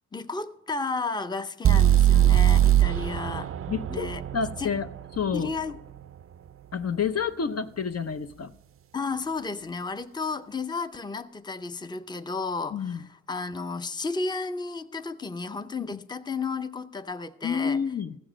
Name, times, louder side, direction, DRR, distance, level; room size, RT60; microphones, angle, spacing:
voice 1, 0.1-3.5 3.9-4.2 4.6-4.7 5.3-5.8 8.9-17.8, left 4 dB, 15° left, 0.6 m, -33 dB
sound 1, 1.6-5.6, right 11 dB, 50° right, 0.4 m, -21 dB
voice 2, 3.7-4.9 5.2-5.5 6.7-8.5 12.7-13.0 15.9-16.0 17.4-18.2, left 6 dB, 55° left, 0.7 m, -29 dB
15.0 x 7.1 x 6.1 m
cardioid pair, 70°, 30 cm